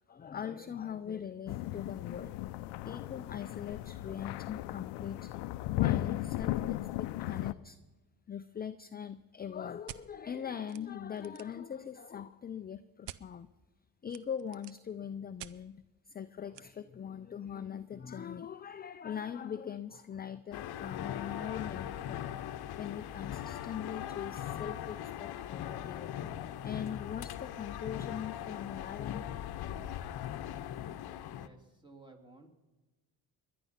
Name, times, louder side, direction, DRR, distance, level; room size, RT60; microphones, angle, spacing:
voice 1, 0.1-2.3 2.8-5.4 5.7-7.8 8.3-13.5 14.0-22.2 22.8-26.1 26.6-29.3, left 8 dB, 25° left, 11 dB, 0.5 m, -41 dB
sound 1, 1.5-7.5, left 16 dB, 85° left, 0.6 m, -35 dB
sound 2, 9.9-10.0 10.7-10.8 11.1-11.6 13.0-13.2 14.1-14.8 15.4-15.5 16.5-16.6, right 13 dB, 80° right, 0.7 m, -47 dB
sound 3, 20.5-31.5, left 11 dB, 65° left, 0.9 m, -40 dB
voice 2, 31.3-32.5, right 2 dB, 10° right, 2 dB, 2.9 m, -56 dB
21.0 x 11.0 x 5.8 m, 1.2 s
cardioid pair, 95°, 41 cm